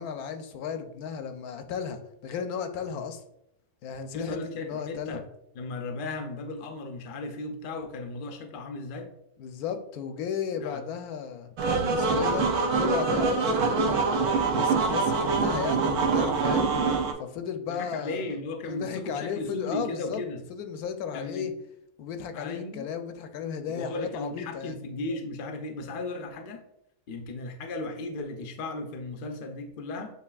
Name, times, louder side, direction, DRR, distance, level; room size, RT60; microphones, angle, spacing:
voice 1, 0.0-3.2 3.8-5.2 9.4-11.5 11.9-12.5 12.7-16.7 17.2-18.3 18.6-20.2 20.5-21.5 22.0-24.8, left 7 dB, 75° left, 8 dB, 1.0 m, -34 dB
voice 2, 4.1-5.2 5.5-9.1 10.6-10.8 17.7-20.4 21.1-21.5 22.3-22.8 23.7-26.6 27.1-30.1, left 2 dB, 60° left, 3 dB, 0.5 m, -36 dB
sound 1, 11.6-17.1, right 4 dB, 75° right, 1.1 m, -25 dB
8.0 x 2.7 x 2.3 m, 0.78 s
omnidirectional pair, 1.6 m